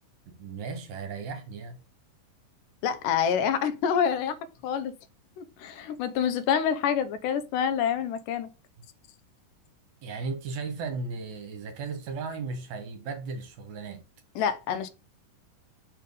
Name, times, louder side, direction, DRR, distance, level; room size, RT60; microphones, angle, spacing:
voice 1, 0.3-1.8 10.0-14.0, right 4 dB, 70° right, 2.2 m, -36 dB
voice 2, 2.8-4.4 4.6-4.9 5.4-8.5 14.4-14.9, left 8 dB, 80° left, 2.1 m, -27 dB
6.6 x 3.4 x 5.2 m
omnidirectional pair, 3.9 m